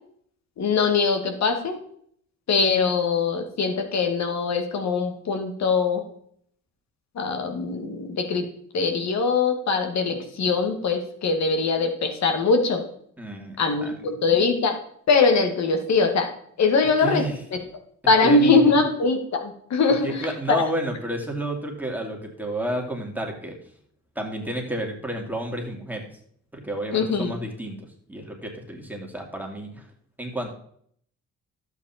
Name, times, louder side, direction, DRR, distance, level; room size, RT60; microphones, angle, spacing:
voice 1, 0.6-1.8 2.5-6.0 7.2-8.5 8.7-12.8 13.6-14.7 15.1-16.3 16.6-17.2 18.1-20.7 26.9-27.3, left 4 dB, 60° left, 5 dB, 2.3 m, -22 dB
voice 2, 13.2-13.9 17.0-17.4 18.2-18.6 20.0-23.5 24.2-26.1 26.5-29.8 30.2-30.5, right 1 dB, 5° right, 1 dB, 2.6 m, -31 dB
11.5 x 8.2 x 4.4 m, 0.64 s
cardioid pair, 90°, 30 cm